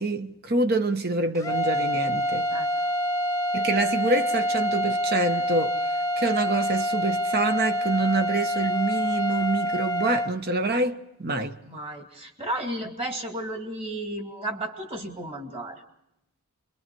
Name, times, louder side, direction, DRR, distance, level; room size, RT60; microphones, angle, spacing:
voice 1, 0.0-2.5 3.5-5.8 6.2-11.6, right 2 dB, 45° right, 1.1 m, -26 dB
sound 1, 1.3-10.3, equal, 15° left, 0.8 m, -26 dB
voice 2, 11.6-15.8, right 1 dB, 25° right, 2.3 m, -33 dB
28.0 x 23.0 x 4.5 m
head